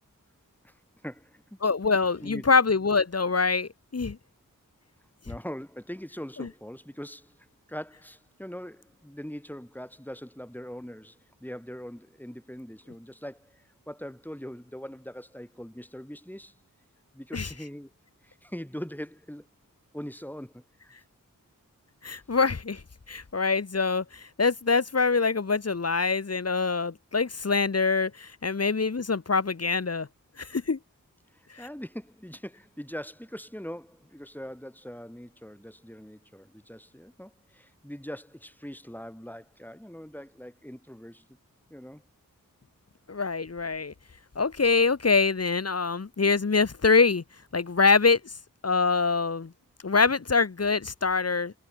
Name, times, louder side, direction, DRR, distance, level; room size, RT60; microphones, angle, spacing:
voice 1, 1.0-1.6 2.2-2.4 5.3-16.5 17.1-17.9 18.2-19.5 19.9-20.9 31.3-41.3 41.7-42.0, equal, 5° left, 4.5 m, -42 dB
voice 2, 1.6-4.2 6.4-6.5 17.3-17.5 22.0-22.8 23.1-30.1 30.4-30.8 31.5-31.7 43.1-43.9 44.4-47.2 47.5-48.3 48.6-49.5 49.8-51.5, left 4 dB, 45° left, 1.0 m, -24 dB
wide cardioid pair, 40°, 34 cm